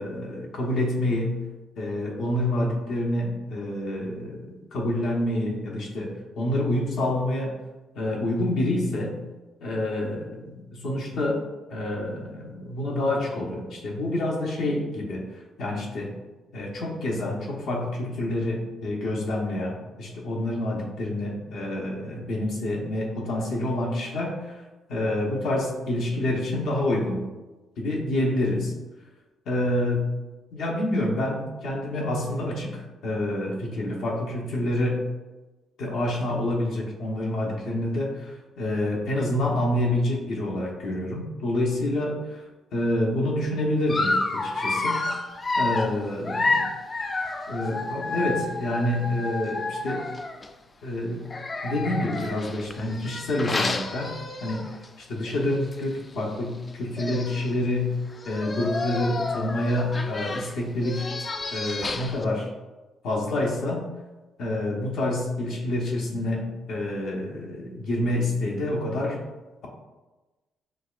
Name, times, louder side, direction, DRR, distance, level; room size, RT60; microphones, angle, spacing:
voice 1, 0.0-1.4 1.8-7.5 7.9-9.2 9.6-11.4 11.7-16.1 16.5-24.6 24.9-27.3 27.8-28.7 29.5-30.1 30.5-35.1 35.8-42.5 42.7-45.0 45.6-46.7 47.5-50.1 50.8-51.3 51.6-54.1 54.4-54.6 55.0-58.0 58.2-61.1 61.5-62.5 63.0-63.9 64.4-69.2, left 1 dB, 75° left, -2 dB, 0.9 m, -27 dB
Dog, 43.9-50.5 51.2-54.9 55.3-55.4 55.7-55.8 56.7-56.8 57.0-57.5 58.1-62.2, left 3 dB, 30° left, 0.3 m, -30 dB
6.3 x 2.3 x 2.4 m, 1.2 s
cardioid pair, 90°, 0 cm